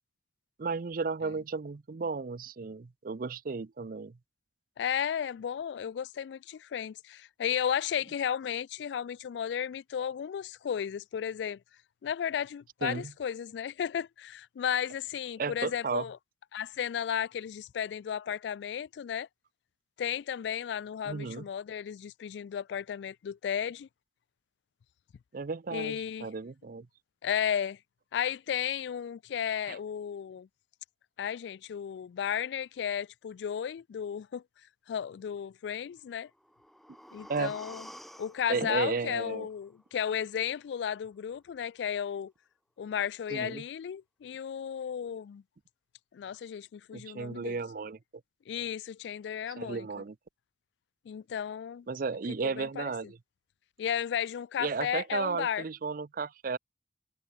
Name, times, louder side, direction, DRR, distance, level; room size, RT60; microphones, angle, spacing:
voice 1, 0.6-4.2 12.8-13.1 15.4-16.1 21.1-21.5 25.3-26.9 29.7-29.8 37.3-37.5 38.5-39.5 43.3-43.6 46.9-48.0 49.6-50.2 51.9-53.2 54.6-56.6, right 4 dB, 50° right, 0.5 m, -34 dB
voice 2, 4.8-11.6 12.0-16.2 16.5-19.3 20.0-23.9 25.7-26.3 27.2-27.8 28.1-30.5 31.2-34.4 34.9-36.3 37.1-37.9 38.2-42.3 42.8-45.4 46.1-47.6 48.5-49.9 51.1-51.9 52.6-52.9 53.8-55.6, left 8 dB, 80° left, 0.3 m, -34 dB
sound 1, 36.2-40.2 40.6-40.7, equal, ahead, 3.1 m, -51 dB
head